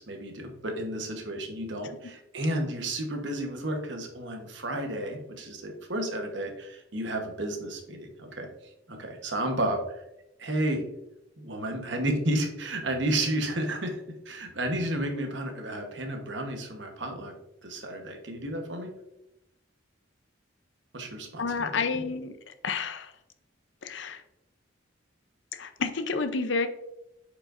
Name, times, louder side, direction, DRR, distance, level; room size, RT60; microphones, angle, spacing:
voice 1, 0.0-8.5 8.9-10.0 10.4-10.8 11.4-14.0 14.2-17.3 17.6-18.9 20.9-22.0, right 1 dB, 60° right, 4 dB, 1.1 m, -32 dB
voice 2, 21.4-22.3 22.6-23.1 23.8-24.2 25.5-26.7, left 4 dB, 65° left, 9 dB, 0.6 m, -30 dB
8.4 x 5.0 x 2.5 m, 0.88 s
head